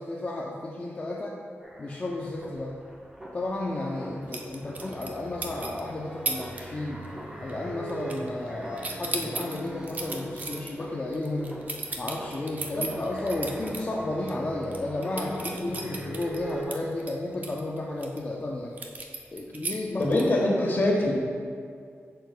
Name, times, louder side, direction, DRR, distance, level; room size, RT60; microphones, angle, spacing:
voice 1, 0.0-1.4 1.8-2.7 3.3-7.0 7.4-11.5 12.0-18.7 19.3-20.2 20.6-20.7, left 2 dB, 30° left, -4 dB, 0.6 m, -33 dB
sound 1, 1.6-16.6, right 1 dB, 15° right, 1.0 m, -42 dB
sound 2, 4.3-5.2 5.4-5.8 6.3-6.6 6.9-7.2 7.5-8.5 8.8-13.8 14.2-14.3 14.6-18.2 18.8-20.4, right 3 dB, 35° right, 0.6 m, -35 dB
voice 2, 20.0-21.1, left 1 dB, 45° left, -2 dB, 1.3 m, -24 dB
7.9 x 6.6 x 2.2 m, 2.3 s
wide cardioid pair, 150°, 5 cm